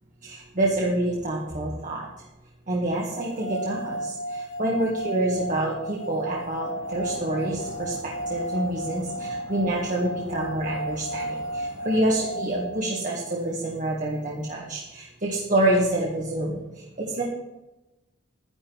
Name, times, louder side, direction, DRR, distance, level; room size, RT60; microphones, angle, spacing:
voice 1, 0.2-2.1 2.7-17.2, right 1 dB, 45° right, -3 dB, 1.8 m, -27 dB
sound 1, 3.1-13.2, right 1 dB, 65° left, 1.9 m, -34 dB
sound 2, 6.6-12.2, right 1 dB, 70° right, 2.4 m, -44 dB
11.0 x 10.5 x 4.7 m, 1.0 s
head